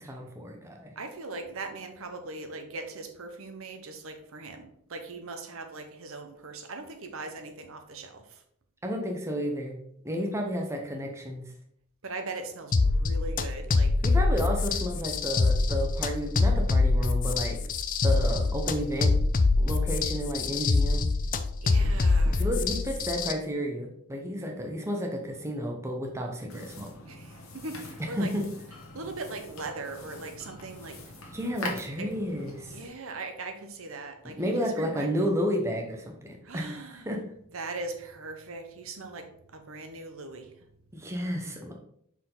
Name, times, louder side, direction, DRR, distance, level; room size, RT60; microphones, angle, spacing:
voice 1, 0.0-0.9 8.8-9.8 10.0-11.4 14.0-17.6 18.0-19.1 19.6-21.1 22.3-26.9 28.0-28.5 31.3-32.8 34.2-37.2 40.9-41.7, equal, 15° right, 1 dB, 0.8 m, -32 dB
voice 2, 1.0-8.4 12.0-13.9 21.6-22.5 27.1-28.3 28.9-31.0 32.0-32.1 32.7-35.1 36.4-37.0 37.5-40.5, right 3 dB, 65° right, 6 dB, 0.9 m, -40 dB
sound 1, 12.7-23.3, left 3 dB, 40° left, 0.4 m, -25 dB
sound 2, 26.5-32.9, left 2 dB, 65° left, 1.4 m, -43 dB
5.8 x 4.6 x 3.8 m, 0.70 s
head